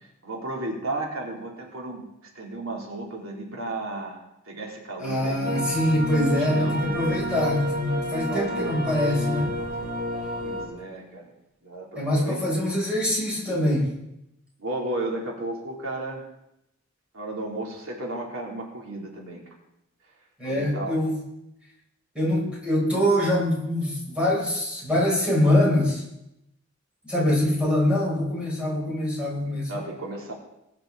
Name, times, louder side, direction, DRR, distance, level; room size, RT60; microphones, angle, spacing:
voice 1, 0.2-2.1 2.3-5.6 6.5-7.1 8.2-8.7 10.4-11.3 11.6-12.6 14.6-16.3 17.1-19.4 20.4-21.0 29.7-30.3, right 2 dB, 90° right, -1 dB, 3.0 m, -34 dB
voice 2, 5.0-9.5 12.0-13.9 20.4-21.1 22.1-26.0 27.0-29.8, left 1 dB, 5° right, -6 dB, 6.6 m, -24 dB
sound 1, 5.4-10.6, equal, 45° right, 6.5 m, -30 dB
21.5 x 9.6 x 3.9 m, 0.86 s
head